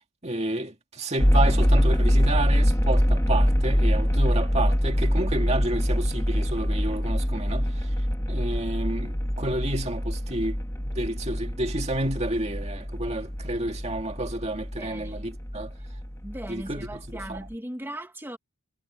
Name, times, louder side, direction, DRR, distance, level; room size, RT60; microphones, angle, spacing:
voice 1, 0.0-7.9 8.3-15.7 16.5-17.4, right 1 dB, 30° right, 2.2 m, -30 dB
sound 1, 1.2-17.5, equal, 15° left, 1.6 m, -25 dB
voice 2, 14.8-15.2 16.2-18.4, right 1 dB, 10° right, 2.0 m, -38 dB
head